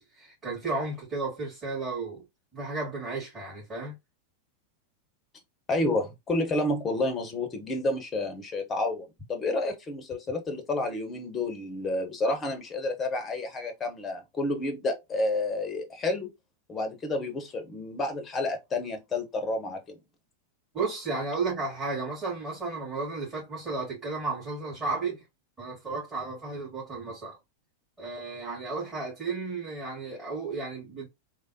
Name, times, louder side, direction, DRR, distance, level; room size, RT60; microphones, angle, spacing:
voice 1, 0.0-2.2 2.5-4.0 20.7-25.2 25.6-27.4 28.0-31.1, right 3 dB, 20° right, 1.9 m, -33 dB
voice 2, 5.7-16.3 16.7-20.0, left 2 dB, 20° left, 0.7 m, -30 dB
3.3 x 2.1 x 2.7 m
figure-of-eight pair, 90°, 0 cm